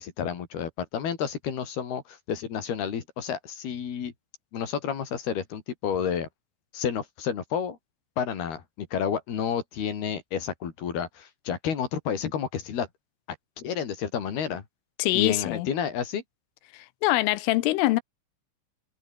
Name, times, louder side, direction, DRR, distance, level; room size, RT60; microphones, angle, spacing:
voice 1, 0.0-4.1 4.5-6.3 6.7-7.8 8.2-12.9 13.6-14.6 15.1-16.2, left 8 dB, 55° left, 4.8 m, -30 dB
voice 2, 15.0-15.7 16.7-18.0, left 18 dB, 90° left, 3.5 m, -24 dB
omnidirectional pair, 5.6 m